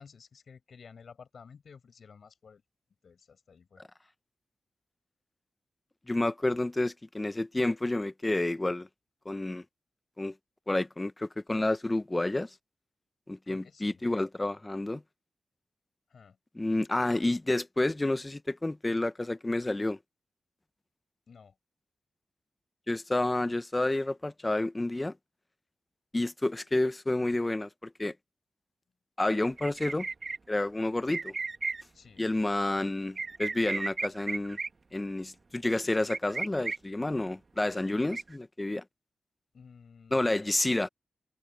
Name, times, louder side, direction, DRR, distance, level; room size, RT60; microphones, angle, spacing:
voice 1, 0.0-2.6 3.0-3.8 13.5-14.0 16.1-16.4 21.3-21.6 31.9-32.2 39.5-40.4, left 6 dB, 70° left, 6.9 m, -53 dB
voice 2, 6.1-8.9 9.2-9.6 10.2-10.3 10.7-12.5 13.3-15.0 16.6-20.0 22.9-25.1 26.1-28.1 29.2-30.1 30.5-31.3 32.2-34.6 34.9-38.8 40.1-40.9, left 2 dB, 25° left, 0.9 m, -29 dB
sound 1, 29.6-30.4 31.1-31.8 33.2-34.7 36.1-36.8 38.1-38.3, right 4 dB, 50° right, 1.6 m, -34 dB
open air
cardioid pair, 45°, 0 cm